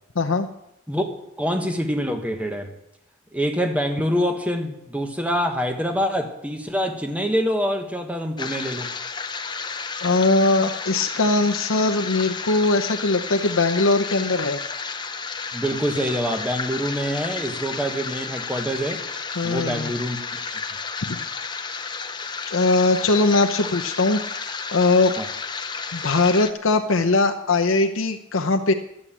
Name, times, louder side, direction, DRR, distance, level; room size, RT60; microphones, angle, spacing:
voice 1, 0.2-0.5 10.0-14.6 19.4-19.9 21.1-21.2 22.5-25.1 25.9-28.7, left 3 dB, 80° left, 5 dB, 0.8 m, -20 dB
voice 2, 1.4-2.7 3.3-8.9 15.5-19.0 19.4-20.6 25.2-25.3, equal, 5° right, 4 dB, 1.4 m, -25 dB
sound 1, 8.4-26.5, left 5 dB, 20° left, 0.7 m, -32 dB
12.0 x 8.7 x 7.4 m, 0.82 s
head